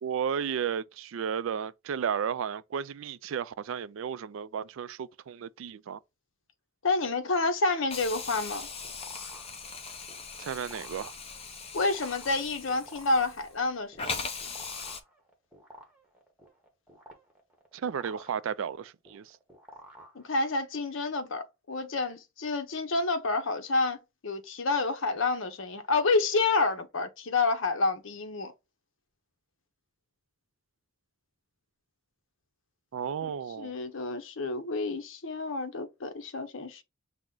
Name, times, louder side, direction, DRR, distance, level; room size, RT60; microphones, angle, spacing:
voice 1, 0.0-6.0 10.4-11.1 17.7-19.4 32.9-33.7, right 7 dB, 70° right, 0.3 m, -33 dB
voice 2, 6.8-8.7 11.7-14.3 20.1-24.0 24.2-28.5 33.6-36.8, left 3 dB, 65° left, 0.8 m, -29 dB
Hiss, 7.9-13.6 14.0-15.0, left 5 dB, 30° left, 0.6 m, -40 dB
sound 1, 8.5-20.7, right 1 dB, 5° right, 1.0 m, -52 dB
5.9 x 2.1 x 3.8 m
head